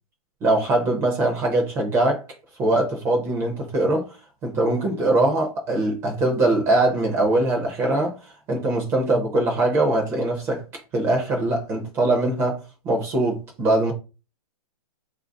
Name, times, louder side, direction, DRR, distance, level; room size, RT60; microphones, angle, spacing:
voice 1, 0.4-2.2 2.6-4.1 4.4-8.1 8.5-10.6 10.9-13.9, right 2 dB, 15° right, 0.5 m, -22 dB
4.6 x 2.6 x 3.5 m
hypercardioid pair, 165°, 19 cm